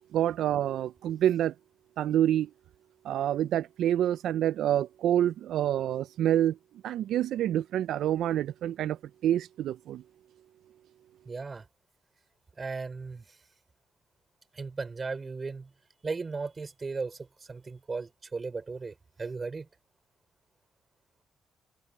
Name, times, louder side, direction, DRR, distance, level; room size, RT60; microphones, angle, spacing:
voice 1, 0.1-1.5 2.0-2.5 3.0-6.5 6.8-9.0 9.2-10.0, right 11 dB, 75° right, 0.4 m, -27 dB
voice 2, 11.3-11.6 12.6-13.2 14.5-15.7 16.0-17.2 17.5-19.7, right 4 dB, 30° right, 5.5 m, -36 dB
cardioid pair, 90°, 0 cm